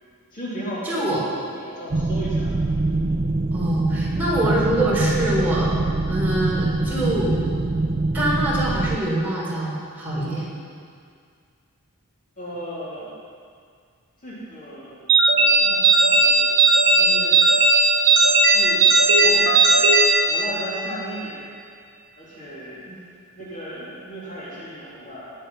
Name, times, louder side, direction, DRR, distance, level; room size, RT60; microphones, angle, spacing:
voice 1, 0.3-1.1 1.5-2.5 3.0-3.2 12.4-13.1 14.2-15.0 15.3-17.8 18.5-18.9 19.2-21.4 22.2-25.3, equal, 35° left, -8 dB, 3.3 m, -36 dB
voice 2, 0.8-1.2 3.5-5.7 6.1-7.5 8.1-10.5 22.9-23.0, right 1 dB, 10° right, -7 dB, 4.5 m, -24 dB
sound 1, 1.9-9.0, right 2 dB, 30° right, 0.4 m, -24 dB
sound 2, 15.1-20.9, right 3 dB, 50° right, 2.7 m, -16 dB
18.5 x 9.0 x 5.7 m, 2.2 s
head